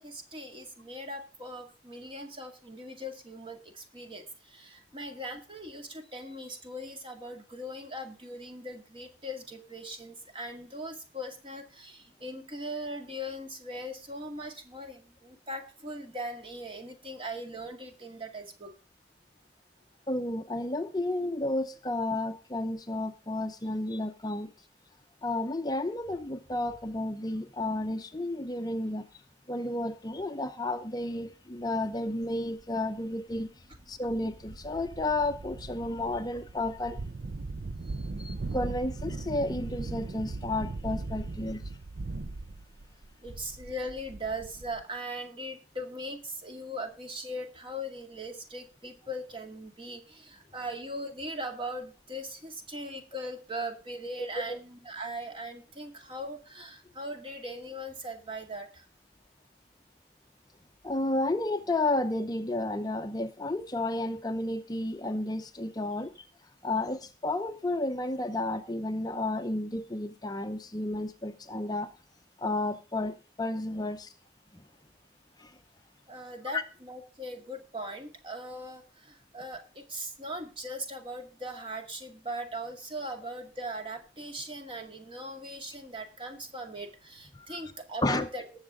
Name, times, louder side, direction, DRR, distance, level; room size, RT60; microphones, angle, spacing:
voice 1, 0.0-18.7 37.8-38.1 43.2-58.9 76.1-88.4, equal, 30° right, 5 dB, 2.1 m, -40 dB
voice 2, 20.1-24.5 25.2-29.0 29.5-33.5 33.9-37.0 38.2-41.6 54.5-54.6 60.8-66.1 66.6-71.9 72.4-74.1 75.4-75.5 76.5-76.6 87.5-87.6 88.0-88.3, left 2 dB, 20° left, 8 dB, 0.7 m, -32 dB
sound 1, 32.6-32.7 33.4-33.5 33.8-44.8, right 3 dB, 60° right, 0.5 m, -39 dB
20.0 x 7.2 x 3.7 m, 0.33 s
head